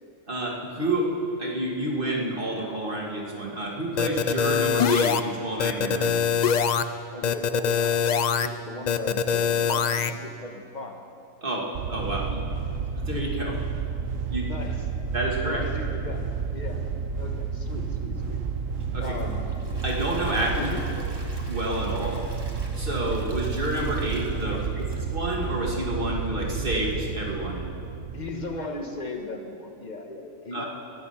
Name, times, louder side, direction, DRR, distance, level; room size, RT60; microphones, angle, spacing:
voice 1, 0.3-1.1 1.4-6.2 11.4-12.4 12.8-13.6 14.3-14.5 15.1-15.6 18.9-19.1 19.8-20.7 21.5-22.2 22.7-24.9 25.1-27.6 30.5-30.7, right 1 dB, 40° right, -2 dB, 2.3 m, -29 dB
sound 1, 4.0-5.2 5.6-6.8 7.2-8.5 8.9-10.1, left 7 dB, 90° left, 0.3 m, -23 dB
voice 2, 7.1-11.0 14.4-14.8 15.4-16.2 16.5-16.8 17.2-18.4 19.0-19.5 20.6-20.8 24.4-24.9 28.1-30.6, left 3 dB, 35° left, 3 dB, 1.3 m, -37 dB
sound 2, 11.7-28.3, right 5 dB, 80° right, 1.2 m, -31 dB
Gurgling / Toilet flush / Trickle dribble, 18.8-25.8 26.2-26.3 26.8-26.9, right 1 dB, 20° right, 1.3 m, -46 dB
20.5 x 8.7 x 5.7 m, 2.5 s
omnidirectional pair, 1.4 m